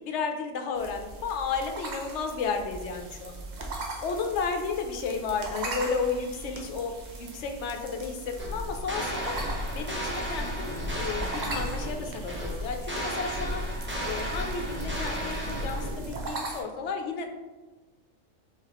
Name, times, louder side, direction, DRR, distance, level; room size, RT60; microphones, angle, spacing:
voice 1, 0.0-3.5 4.0-6.9 7.2-9.4 9.7-13.6 14.0-17.3, left 5 dB, 70° left, 4 dB, 0.9 m, -33 dB
sound 1, 0.7-16.6, right 2 dB, 50° right, 0.5 m, -40 dB
sound 2, 8.4-16.3, equal, 10° right, 0.8 m, -33 dB
4.8 x 3.5 x 2.9 m, 1.2 s
omnidirectional pair, 1.3 m